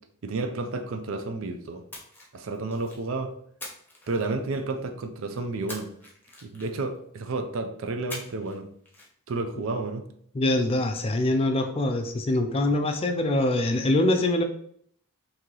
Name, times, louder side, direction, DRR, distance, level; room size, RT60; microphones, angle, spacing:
voice 1, 0.2-1.8 2.3-3.4 4.1-5.9 6.4-8.7 9.3-10.0, right 3 dB, 60° right, 0.4 m, -31 dB
Splash splatter, 1.9-3.1 3.6-4.8 5.7-7.0 8.1-8.6 8.8-9.1, left 1 dB, 10° left, 0.8 m, -43 dB
voice 2, 10.3-14.4, left 1 dB, 25° left, 0.3 m, -24 dB
3.0 x 2.7 x 3.8 m
head